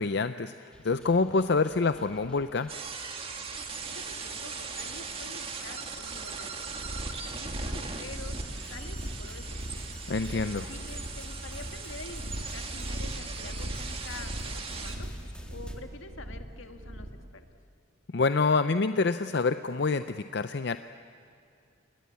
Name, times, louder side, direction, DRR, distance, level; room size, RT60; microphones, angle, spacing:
voice 1, 0.0-2.7 10.1-10.7 18.1-20.8, left 4 dB, 55° left, 10 dB, 0.6 m, -27 dB
sound 1, 0.7-15.8, equal, 5° left, 1.8 m, -47 dB
sound 2, 2.7-15.0, right 5 dB, 30° right, 2.0 m, -39 dB
voice 2, 3.9-6.6 7.3-9.9 10.7-15.1 15.5-17.4, left 3 dB, 80° left, 6 dB, 1.8 m, -47 dB
sound 3, 6.7-17.3, equal, 45° right, 2.4 m, -39 dB
29.5 x 21.0 x 8.5 m, 2.5 s
head